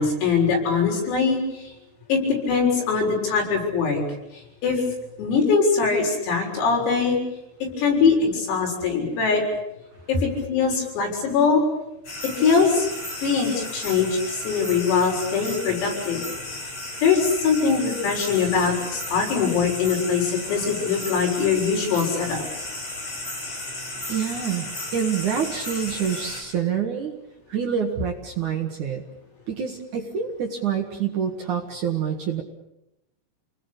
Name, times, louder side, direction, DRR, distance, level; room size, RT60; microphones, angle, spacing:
voice 1, 0.0-1.7 2.1-2.2 2.5-4.0 4.3-4.8 5.2-7.2 7.8-9.4 10.1-11.6 12.4-12.9 13.2-16.2 17.0-22.4, left 5 dB, 90° left, 0 dB, 9.4 m, -22 dB
sound 1, 12.0-26.4, left 1 dB, 30° left, 7.4 m, -34 dB
voice 2, 24.1-27.2 27.5-29.0 29.5-32.4, right 7 dB, 60° right, 3 dB, 2.2 m, -27 dB
29.0 x 20.0 x 8.3 m, 0.89 s
omnidirectional pair, 5.9 m